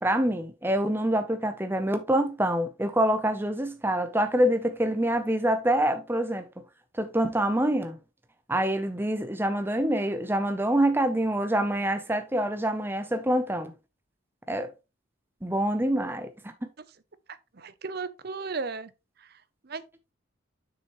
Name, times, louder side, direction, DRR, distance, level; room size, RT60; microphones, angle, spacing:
voice 1, 0.0-6.5 6.9-8.0 8.5-13.7 14.5-14.7 15.4-16.3 16.6-16.7, right 1 dB, 10° right, 0.6 m, -26 dB
voice 2, 17.3-18.9 19.2-19.3 19.6-19.8, right 4 dB, 50° right, 0.6 m, -35 dB
7.5 x 6.4 x 3.1 m
head